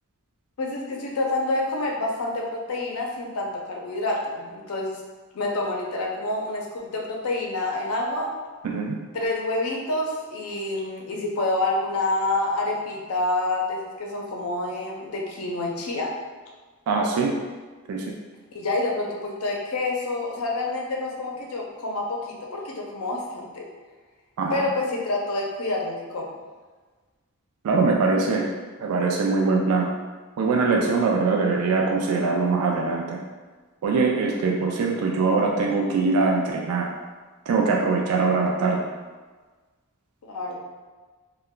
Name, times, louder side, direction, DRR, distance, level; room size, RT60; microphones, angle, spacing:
voice 1, 0.6-5.0 5.3-8.3 9.1-16.1 18.5-23.6 24.5-26.4 40.2-40.6, left 2 dB, 75° left, -1 dB, 0.5 m, -28 dB
voice 2, 8.6-8.9 16.9-17.3 17.9-18.1 24.4-24.6 27.6-28.5 28.8-29.9 30.4-33.2 33.8-36.9 37.5-38.9, right 4 dB, 75° right, -1 dB, 0.3 m, -22 dB
2.2 x 2.2 x 3.6 m, 1.4 s
head